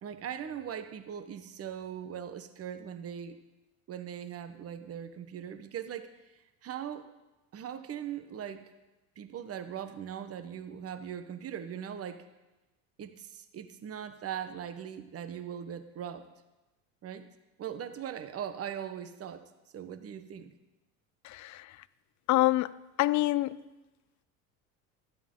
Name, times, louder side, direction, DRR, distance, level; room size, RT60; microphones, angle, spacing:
voice 1, 0.0-3.4 3.9-6.2 6.6-7.1 7.5-8.7 9.2-12.3 13.0-16.3 17.0-17.3 17.6-20.5, right 9 dB, 35° right, 1.1 m, -40 dB
voice 2, 21.2-21.7 22.3-22.7 23.0-23.6, left 17 dB, 45° left, 0.6 m, -26 dB
16.0 x 12.5 x 3.9 m
hypercardioid pair, 85°, 39 cm